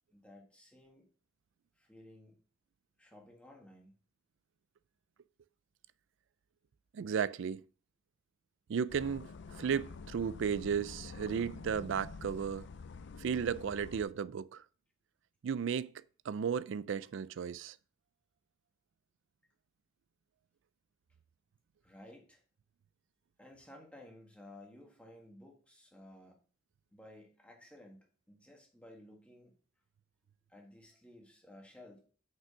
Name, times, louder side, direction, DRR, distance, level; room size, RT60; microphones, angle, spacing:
voice 1, 0.1-1.1 1.7-2.4 3.0-3.9 21.8-22.4 23.4-26.4 26.9-28.0 28.3-29.5 30.5-32.0, left 1 dB, 5° left, 1.5 m, -55 dB
voice 2, 6.9-7.6 8.7-12.7 13.2-14.6 15.4-15.9 16.3-17.8, right 7 dB, 60° right, 0.3 m, -34 dB
sound 1, 8.9-14.1, left 4 dB, 55° left, 0.4 m, -48 dB
5.9 x 5.5 x 4.9 m
head